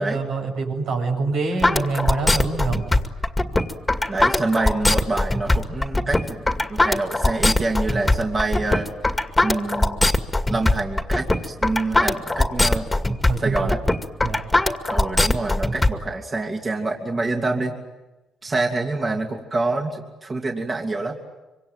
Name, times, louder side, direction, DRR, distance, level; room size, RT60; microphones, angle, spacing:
voice 1, 0.0-2.8 13.3-13.5 14.2-14.4, right 3 dB, 80° right, 3 dB, 7.9 m, -25 dB
sound 1, 1.6-15.9, left 2 dB, 15° left, 2.2 m, -20 dB
voice 2, 4.1-8.9 9.4-10.0 10.5-13.0 13.4-13.8 14.9-17.8 18.4-21.2, right 2 dB, 30° right, 2 dB, 2.9 m, -26 dB
25.5 x 25.5 x 9.1 m, 1.1 s
cardioid pair, 90°, 0 cm